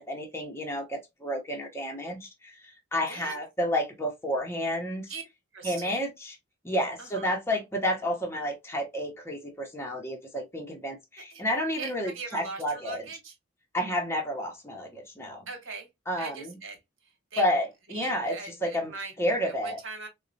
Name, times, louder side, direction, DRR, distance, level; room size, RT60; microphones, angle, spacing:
voice 1, 0.0-5.1 5.6-6.4 6.6-13.0 13.7-15.5 16.1-16.6 17.4-18.4 18.6-18.9 19.2-19.8, equal, 15° left, 0.7 m, -30 dB
voice 2, 5.5-6.0 7.0-7.4 11.3-11.4 11.8-13.3 15.5-15.9 16.2-16.8 17.3-17.4 17.9-19.1 19.5-20.1, right 4 dB, 70° right, 1.1 m, -40 dB
4.0 x 2.1 x 2.6 m
head